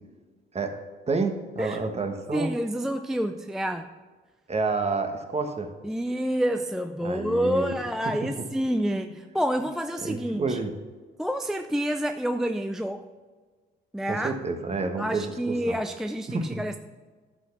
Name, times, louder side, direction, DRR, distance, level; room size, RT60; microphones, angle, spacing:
voice 1, 1.1-2.5 4.5-5.7 7.0-7.7 8.0-8.3 9.0-9.1 10.0-10.7 14.1-15.8 16.3-16.6, right 3 dB, 30° right, 5 dB, 1.3 m, -29 dB
voice 2, 2.3-3.9 5.8-10.6 11.2-13.1 13.9-14.3 15.0-16.8, equal, ahead, 7 dB, 0.4 m, -28 dB
11.0 x 6.0 x 5.9 m, 1.4 s
cardioid pair, 90°, 20 cm